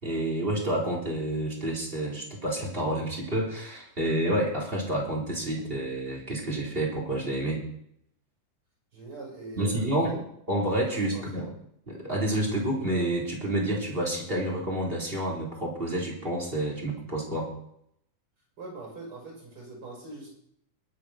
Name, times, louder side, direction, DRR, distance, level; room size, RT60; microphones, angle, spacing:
voice 1, 0.0-7.6 9.6-11.5 11.9-17.5, right 1 dB, 15° right, 0 dB, 3.7 m, -29 dB
voice 2, 8.9-10.0 11.1-11.4 18.6-20.3, right 3 dB, 40° right, -1 dB, 6.6 m, -42 dB
21.0 x 7.2 x 6.4 m, 0.73 s
omnidirectional pair, 3.7 m